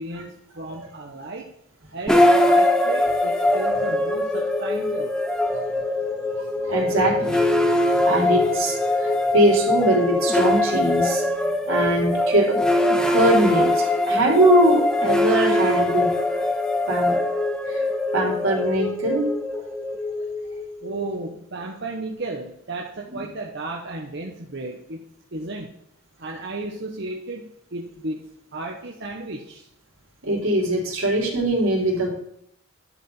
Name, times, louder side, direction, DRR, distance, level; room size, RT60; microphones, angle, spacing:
voice 1, 0.0-1.5 1.9-5.2 20.8-25.0 25.3-25.7 26.2-29.7, right 2 dB, 55° right, 0 dB, 1.1 m, -34 dB
sound 1, 2.1-21.2, left 1 dB, 5° left, 0.8 m, -22 dB
voice 2, 6.4-7.4 7.9-12.6 13.1-16.4 16.9-17.2 17.7-17.8 18.1-19.3 23.1-23.2 30.2-32.1, right 1 dB, 85° right, -2 dB, 3.5 m, -22 dB
11.0 x 5.1 x 5.5 m, 0.73 s
head